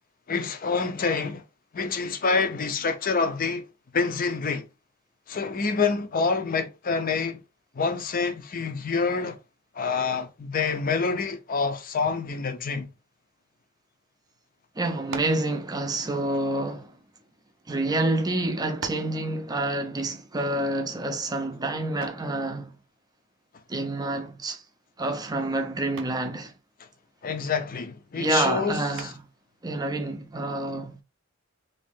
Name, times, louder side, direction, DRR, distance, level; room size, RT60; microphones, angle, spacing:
voice 1, 0.3-1.4 1.7-3.7 3.9-4.7 5.3-7.4 7.8-9.4 9.8-12.9 27.2-28.8, left 4 dB, 45° left, 0.6 m, -27 dB
voice 2, 14.8-17.0 17.7-22.8 23.7-24.6 25.0-26.5 28.2-29.2 29.6-31.0, right 2 dB, 20° right, 0.5 m, -28 dB
sound 1, 15.1-15.5 16.4-17.6 18.3-18.4 18.8-19.2 22.0-22.3 24.2-24.6 25.0-25.4 26.0-26.3 29.0-29.4, right 5 dB, 65° right, 0.5 m, -41 dB
3.0 x 2.7 x 3.4 m
head